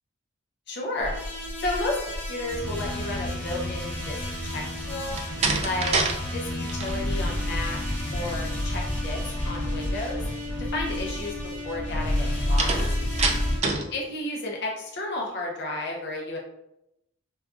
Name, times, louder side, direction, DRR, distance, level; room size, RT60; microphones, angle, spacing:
voice 1, 0.7-1.1 1.6-5.2 5.6-6.0 6.3-7.8 8.1-10.2 10.6-12.8 13.9-16.4, left 2 dB, 50° left, -2 dB, 0.7 m, -32 dB
sound 1, 1.0-13.6, left 1 dB, 10° left, 0.8 m, -30 dB
Slam, 5.1-6.2 6.5-6.9 12.6-13.9, right 4 dB, 30° right, 0.4 m, -26 dB
5.0 x 2.3 x 2.5 m, 0.83 s
head